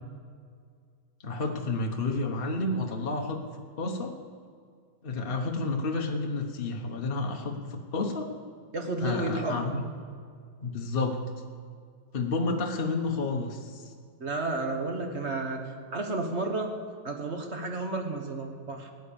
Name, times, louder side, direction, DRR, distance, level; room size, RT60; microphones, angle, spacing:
voice 1, 1.2-3.4 3.8-4.1 5.0-8.3 9.0-9.8 10.6-11.2 12.1-13.9, left 3 dB, 35° left, 2 dB, 1.0 m, -30 dB
voice 2, 8.7-9.7 14.2-15.6 15.9-16.7 17.0-18.9, right 2 dB, 35° right, 3 dB, 1.4 m, -31 dB
18.0 x 9.7 x 7.0 m, 2.1 s
omnidirectional pair, 2.3 m